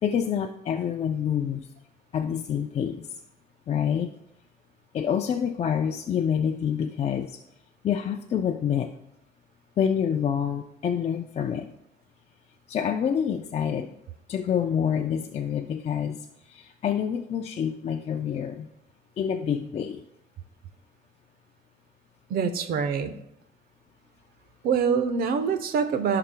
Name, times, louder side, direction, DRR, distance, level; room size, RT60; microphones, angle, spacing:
voice 1, 0.0-1.7 2.1-3.2 3.7-4.1 4.9-7.4 7.8-8.9 9.8-11.7 12.7-13.9 14.3-18.7 19.2-20.0, left 8 dB, 40° left, 4 dB, 0.5 m, -27 dB
voice 2, 22.3-23.2 24.6-26.2, right 6 dB, 65° right, 10 dB, 0.8 m, -25 dB
14.5 x 5.8 x 2.2 m, 0.80 s
cardioid pair, 110°, 17 cm